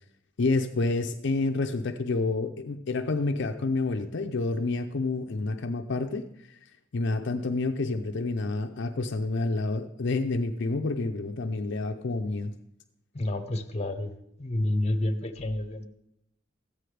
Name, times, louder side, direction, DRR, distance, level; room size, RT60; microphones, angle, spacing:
voice 1, 0.4-6.3 6.9-12.5, left 3 dB, 60° left, 5 dB, 0.5 m, -28 dB
voice 2, 13.1-14.1 14.4-15.9, left 1 dB, 35° left, 6 dB, 0.8 m, -29 dB
14.0 x 9.2 x 3.3 m, 0.79 s
head